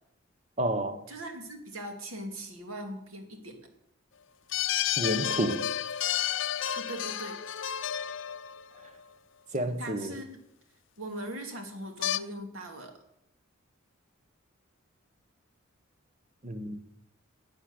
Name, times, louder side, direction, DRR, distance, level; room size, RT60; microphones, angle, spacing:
voice 1, 0.6-1.0 5.0-5.7 9.5-10.2 16.4-16.8, right 1 dB, 35° right, 1.1 m, -30 dB
voice 2, 1.1-3.6 6.7-7.4 9.8-10.4 11.0-13.0, right 1 dB, 85° right, 2.5 m, -40 dB
sound 1, 4.5-9.0 12.0-12.2, left 10 dB, 60° left, 0.5 m, -31 dB
12.5 x 8.6 x 8.1 m
head